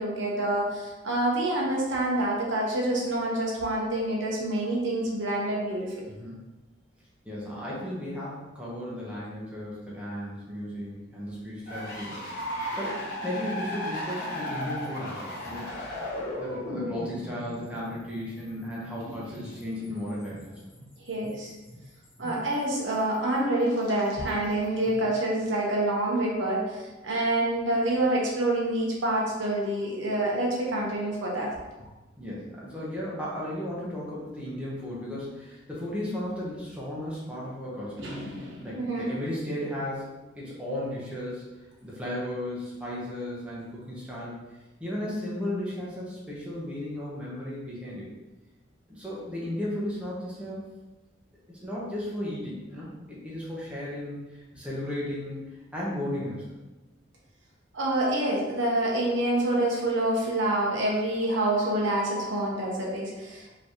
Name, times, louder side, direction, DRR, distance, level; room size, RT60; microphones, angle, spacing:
voice 1, 0.0-5.9 19.1-19.2 21.1-21.5 22.2-31.5 38.0-39.1 57.7-63.6, right 1 dB, 75° right, -3 dB, 1.1 m, -27 dB
voice 2, 6.1-6.4 7.2-15.7 16.3-20.5 24.9-25.1 32.2-38.1 38.6-40.1 40.4-44.4 44.8-48.1 48.9-50.6 51.5-56.5, left 1 dB, 5° right, -7 dB, 1.0 m, -35 dB
sound 1, 11.7-22.8 23.1-24.5, left 1 dB, 50° left, 1.1 m, -36 dB
5.1 x 3.2 x 3.0 m, 1.1 s
head